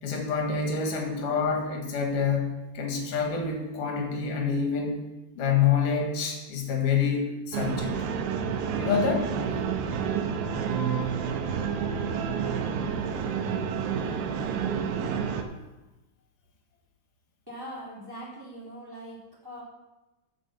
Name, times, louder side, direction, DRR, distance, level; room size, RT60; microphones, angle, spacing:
voice 1, 0.0-5.0 5.4-8.0 8.8-9.3 14.1-14.3, left 6 dB, 60° left, 1 dB, 2.8 m, -27 dB
sound 1, 7.5-15.4, right 6 dB, 90° right, 3.0 m, -29 dB
voice 2, 17.5-19.2 19.4-19.6, equal, 5° right, -6 dB, 2.6 m, -41 dB
8.6 x 7.1 x 7.0 m, 1.1 s
omnidirectional pair, 4.8 m